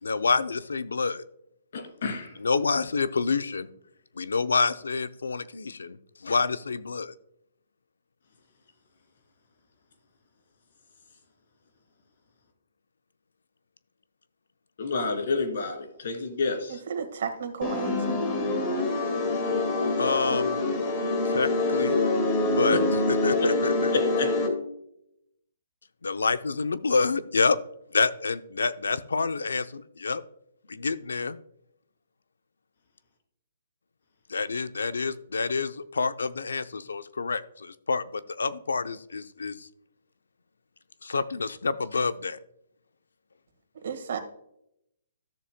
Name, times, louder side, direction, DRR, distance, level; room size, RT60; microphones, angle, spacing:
voice 1, 0.0-1.2 2.4-3.7 4.2-7.1 20.0-20.7 21.2-22.0 22.5-23.9 26.0-27.6 27.9-30.2 30.7-31.4 34.3-39.7 41.0-42.4, left 4 dB, 90° left, 14 dB, 0.6 m, -28 dB
voice 2, 1.7-2.4 14.8-16.8 23.9-24.3, left 4 dB, 60° left, 5 dB, 2.6 m, -29 dB
voice 3, 16.7-18.2 43.8-44.2, right 6 dB, 60° right, 7 dB, 1.6 m, -33 dB
sound 1, 17.6-24.5, left 2 dB, 30° left, 2.0 m, -25 dB
13.0 x 7.0 x 2.2 m, 0.77 s
hypercardioid pair, 145°, 0 cm